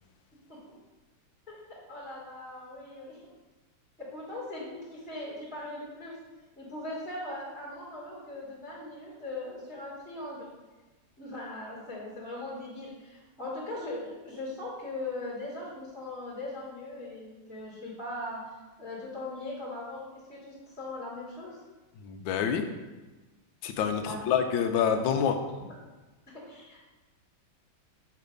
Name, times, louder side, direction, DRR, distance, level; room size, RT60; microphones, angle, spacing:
voice 1, 1.9-3.2 4.0-6.2 6.6-10.5 11.2-18.4 18.8-21.6 24.0-24.3 26.3-26.8, left 2 dB, ahead, -8 dB, 1.6 m, -40 dB
voice 2, 22.0-22.6 23.6-25.4, left 7 dB, 75° left, 6 dB, 1.2 m, -27 dB
6.8 x 3.2 x 5.2 m, 1.2 s
omnidirectional pair, 2.3 m